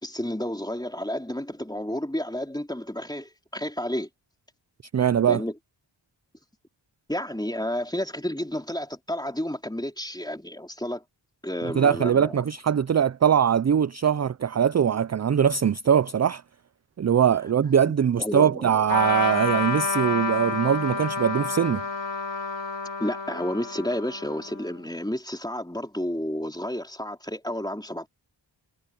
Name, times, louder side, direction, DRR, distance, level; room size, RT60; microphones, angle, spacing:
voice 1, 0.0-4.1 5.3-5.5 7.1-11.0 11.4-12.4 17.9-18.7 23.0-28.1, left 1 dB, 10° left, 3.8 m, -31 dB
voice 2, 4.9-5.4 11.7-16.4 17.0-21.8, right 8 dB, 40° right, 0.4 m, -22 dB
Trumpet, 18.9-24.8, left 4 dB, 70° left, 3.0 m, -29 dB
wide cardioid pair, 60°, 47 cm